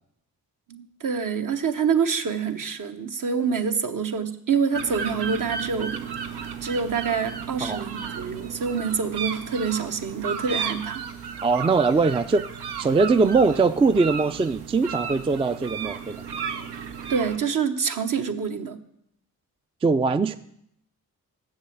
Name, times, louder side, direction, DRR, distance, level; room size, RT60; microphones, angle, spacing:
voice 1, 0.7-6.1 6.6-11.0 17.1-18.8, right 6 dB, 55° right, 7 dB, 1.0 m, -26 dB
sound 1, 4.7-17.4, right 6 dB, 90° right, 0.8 m, -34 dB
voice 2, 11.4-12.4 12.8-16.2 19.8-20.4, right 4 dB, 15° right, 12 dB, 0.3 m, -21 dB
7.2 x 6.6 x 7.8 m, 0.73 s
cardioid pair, 55°, 38 cm